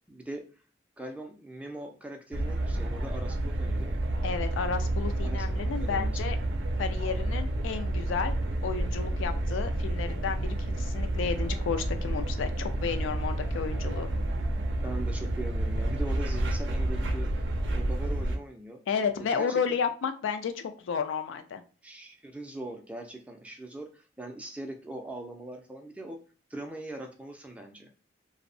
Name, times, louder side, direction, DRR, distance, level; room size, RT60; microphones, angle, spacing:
voice 1, 0.1-0.4 1.0-4.0 5.2-5.5 5.8-6.2 14.8-17.3 17.7-18.8 19.3-19.8 21.8-26.2 26.5-27.9, right 1 dB, 5° right, 3 dB, 0.3 m, -41 dB
sound 1, 2.3-18.4, right 1 dB, 70° right, 0.4 m, -30 dB
voice 2, 4.2-6.4 6.8-8.4 8.6-14.2 18.9-21.6, left 6 dB, 85° left, 7 dB, 0.3 m, -32 dB
2.6 x 2.0 x 2.5 m, 0.37 s
head